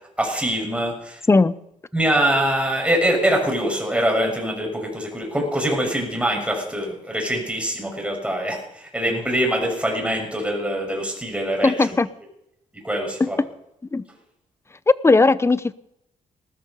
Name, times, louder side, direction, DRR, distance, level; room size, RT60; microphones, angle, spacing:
voice 1, 0.2-1.2 1.9-12.0 12.7-13.4, right 1 dB, 10° right, 1 dB, 6.5 m, -24 dB
voice 2, 11.6-12.1 13.2-13.3 13.9-14.0 15.0-15.7, left 3 dB, 20° left, 17 dB, 0.7 m, -17 dB
19.5 x 13.5 x 5.5 m, 0.79 s
cardioid pair, 105°, 14 cm